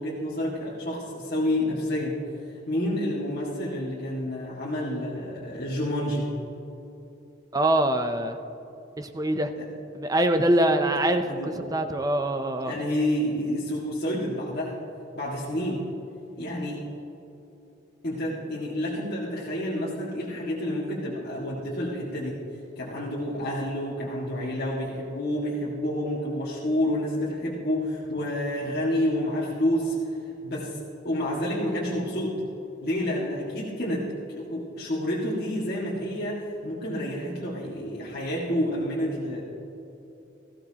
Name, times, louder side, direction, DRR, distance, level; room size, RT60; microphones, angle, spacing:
voice 1, 0.0-2.2 2.7-6.3 11.3-11.5 12.6-14.7 15.1-15.8 16.4-16.8 18.0-22.4 22.8-30.2 30.4-32.4 32.8-34.1 34.3-39.4, left 1 dB, 50° left, -6 dB, 1.9 m, -29 dB
voice 2, 7.5-8.4 9.0-9.5 9.9-12.7, right 1 dB, 20° right, 7 dB, 0.6 m, -24 dB
18.5 x 14.5 x 2.9 m, 3.0 s
head